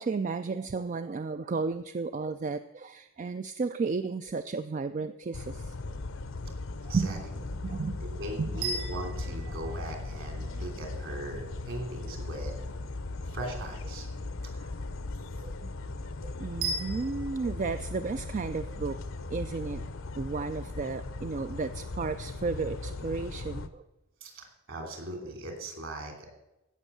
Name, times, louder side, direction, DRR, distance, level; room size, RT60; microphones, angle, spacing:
voice 1, 0.0-5.9 6.8-7.2 7.6-8.0 8.4-8.5 15.4-15.7 16.2-19.0 19.3-19.8 20.2-23.8, right 4 dB, 35° right, 11 dB, 0.3 m, -33 dB
sound 1, 5.3-23.7, left 2 dB, 60° left, 0.7 m, -38 dB
voice 2, 8.0-12.5 13.2-14.1 14.4-14.8 24.2-26.3, right 1 dB, 60° right, 3 dB, 2.9 m, -39 dB
sound 2, 8.6-10.8 16.6-17.4, right 3 dB, 85° right, 3.9 m, -37 dB
15.5 x 6.3 x 6.8 m, 0.99 s
head